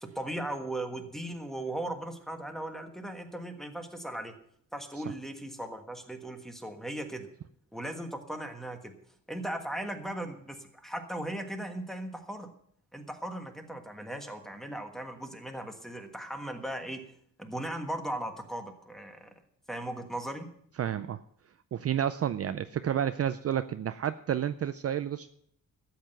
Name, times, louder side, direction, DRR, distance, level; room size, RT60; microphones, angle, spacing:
voice 1, 0.0-4.3 4.7-7.3 7.7-9.0 9.3-12.5 12.9-17.0 17.4-19.3 19.7-20.5, right 1 dB, ahead, 5 dB, 1.4 m, -37 dB
voice 2, 20.8-21.2 21.7-25.3, right 9 dB, 45° right, 11 dB, 0.4 m, -30 dB
13.0 x 8.0 x 7.7 m, 0.68 s
wide cardioid pair, 155°, 33 cm